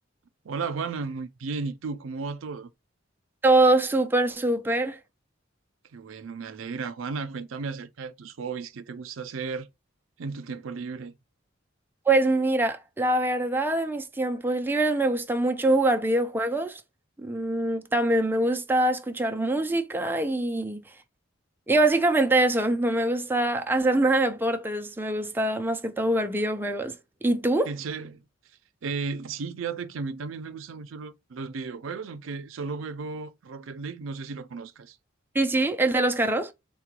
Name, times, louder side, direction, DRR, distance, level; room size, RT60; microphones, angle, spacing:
voice 1, 0.4-2.7 5.9-9.7 10.2-11.1 27.7-28.2 28.8-35.0, right 4 dB, 85° right, 0.5 m, -34 dB
voice 2, 3.4-5.0 12.1-16.8 17.2-20.8 21.7-26.9 27.2-27.7 35.3-36.5, right 2 dB, 10° right, 0.4 m, -24 dB
3.7 x 2.2 x 2.9 m
head